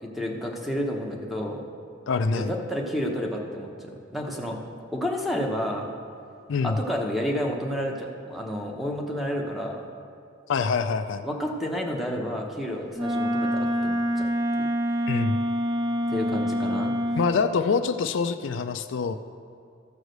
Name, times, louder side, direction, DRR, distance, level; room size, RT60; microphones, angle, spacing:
voice 1, 0.0-1.6 2.3-4.5 4.9-5.9 6.6-9.8 11.2-14.3 14.6-14.7 16.1-16.9, equal, ahead, 0 dB, 0.9 m, -30 dB
voice 2, 2.1-2.5 6.5-6.8 10.5-11.3 15.1-15.4 17.2-19.2, left 5 dB, 65° left, 9 dB, 0.4 m, -25 dB
Wind instrument woodwind instrument, 12.9-17.3, equal, 15° right, 0.5 m, -26 dB
14.0 x 4.8 x 6.5 m, 2.4 s
head